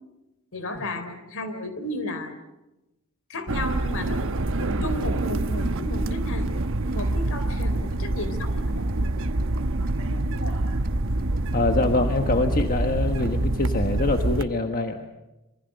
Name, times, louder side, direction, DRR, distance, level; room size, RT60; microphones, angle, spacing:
voice 1, 0.5-2.3 3.3-4.3 4.6-6.5 6.9-9.3 10.0-10.6, left 1 dB, 65° left, 10 dB, 3.8 m, -34 dB
sound 1, 3.5-14.4, right 2 dB, 60° right, 1.0 m, -26 dB
sound 2, 4.1-13.0, right 1 dB, 40° right, 3.9 m, -43 dB
voice 2, 11.5-15.1, left 2 dB, 40° left, 5 dB, 1.4 m, -24 dB
26.5 x 24.0 x 6.7 m, 0.99 s
head